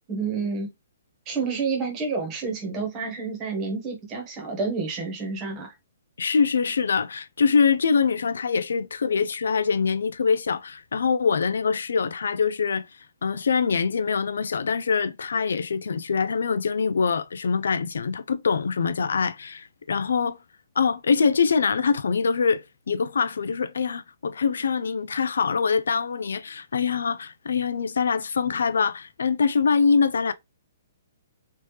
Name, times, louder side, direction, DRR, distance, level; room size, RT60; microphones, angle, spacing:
voice 1, 0.1-0.7 1.3-5.7, right 4 dB, 20° right, 1.1 m, -29 dB
voice 2, 6.2-12.9 13.2-20.4 20.8-30.3, left 5 dB, 85° left, 0.3 m, -24 dB
3.2 x 2.8 x 3.1 m
hypercardioid pair, 170°, 0 cm